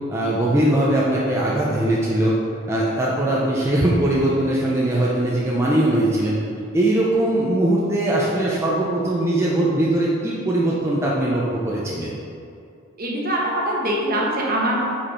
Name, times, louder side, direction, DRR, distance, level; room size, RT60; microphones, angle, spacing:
voice 1, 0.1-2.4 2.7-6.4 6.7-12.2, right 1 dB, 15° right, -6 dB, 0.5 m, -20 dB
voice 2, 13.0-14.8, right 1 dB, 45° right, -3 dB, 1.0 m, -23 dB
5.2 x 4.3 x 4.3 m, 2.5 s
head